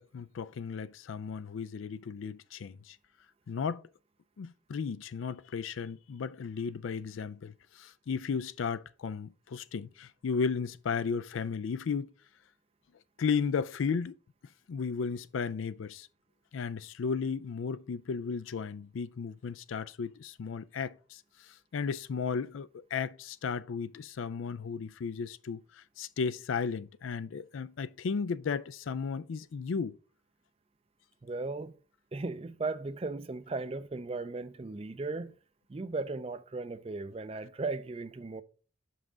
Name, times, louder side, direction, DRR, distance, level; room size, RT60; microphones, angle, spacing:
voice 1, 0.0-3.0 3.5-3.9 4.4-12.1 13.2-14.2 14.7-16.1 16.5-30.0, left 5 dB, 80° left, 0.4 m, -34 dB
voice 2, 31.2-31.8 32.1-35.4 35.7-38.4, right 3 dB, 30° right, 0.4 m, -36 dB
6.1 x 5.5 x 3.9 m
head